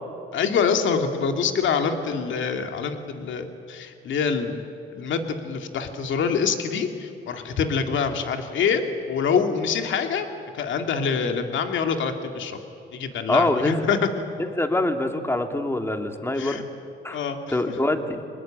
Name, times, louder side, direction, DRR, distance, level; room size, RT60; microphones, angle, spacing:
voice 1, 0.3-4.6 4.9-8.8 9.1-10.3 10.5-12.6 12.9-14.2 16.4-16.6 17.1-17.8, left 6 dB, 70° left, 6 dB, 2.4 m, -25 dB
voice 2, 13.3-13.8 14.5-16.6 17.0-17.2 17.5-18.2, left 1 dB, 10° left, 5 dB, 2.5 m, -24 dB
26.0 x 20.5 x 9.2 m, 2.6 s
cardioid pair, 90°, 20 cm